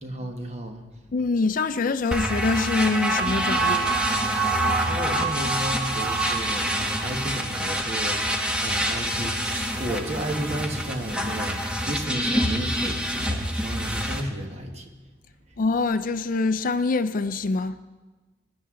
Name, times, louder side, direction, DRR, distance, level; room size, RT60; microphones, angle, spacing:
voice 1, 0.0-1.0 4.8-14.9 15.5-15.6, right 1 dB, 35° right, 1.4 m, -33 dB
voice 2, 1.1-4.0 15.6-17.8, left 3 dB, 45° left, 0.4 m, -25 dB
sound 1, 2.1-14.2, right 1 dB, 5° right, 1.1 m, -26 dB
21.0 x 10.5 x 3.8 m
head